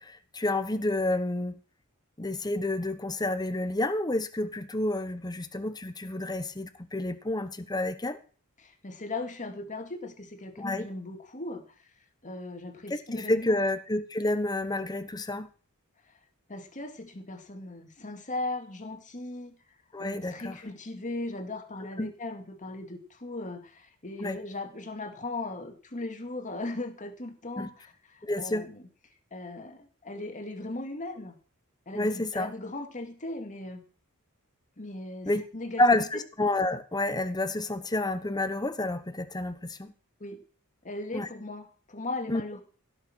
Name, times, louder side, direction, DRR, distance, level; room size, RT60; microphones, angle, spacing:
voice 1, 0.0-1.6 2.2-8.2 10.6-10.9 12.9-15.5 19.9-20.6 22.0-22.1 24.2-24.4 27.6-27.7 28.2-28.6 31.9-32.5 35.3-35.4 35.8-39.9 41.1-41.3 42.3-42.4, left 2 dB, 20° left, 10 dB, 1.0 m, -29 dB
voice 2, 8.6-11.6 12.2-13.6 16.5-19.6 20.0-28.8 29.3-31.4 31.9-33.8 34.8-35.8 40.2-40.4 40.8-42.6, left 2 dB, 35° left, 5 dB, 2.3 m, -38 dB
16.5 x 6.8 x 6.2 m, 0.39 s
head